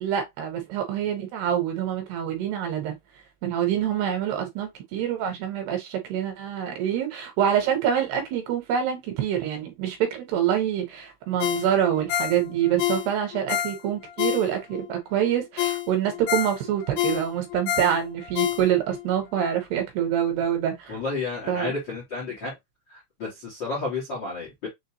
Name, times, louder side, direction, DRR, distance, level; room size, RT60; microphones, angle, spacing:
voice 1, 0.0-3.0 3.4-21.0 21.5-21.7, right 9 dB, 75° right, 2.8 m, -26 dB
Ringtone, 11.4-14.9 15.2-15.3 15.6-19.0 19.4-19.5, left 12 dB, 85° left, 3.2 m, -28 dB
voice 2, 20.9-22.5 22.9-24.7, left 3 dB, 70° left, 1.0 m, -31 dB
6.7 x 2.3 x 2.8 m
omnidirectional pair, 5.2 m